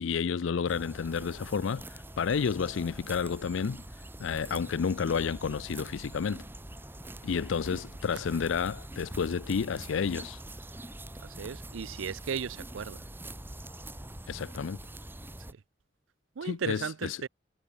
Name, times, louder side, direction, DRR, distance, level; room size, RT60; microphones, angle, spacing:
voice 1, 0.0-3.8 4.2-6.4 7.2-10.4 14.3-14.8 16.4-17.2, left 6 dB, 80° left, 0.4 m, -31 dB
sound 1, 0.7-15.5, right 1 dB, 10° right, 1.6 m, -44 dB
sound 2, 6.7-11.1, right 6 dB, 40° right, 7.2 m, -69 dB
Fire, 8.1-9.1 9.5-9.7 10.0-10.2, right 7 dB, 70° right, 4.7 m, -59 dB
voice 2, 11.2-13.0 16.4-17.3, right 6 dB, 85° right, 0.5 m, -36 dB
head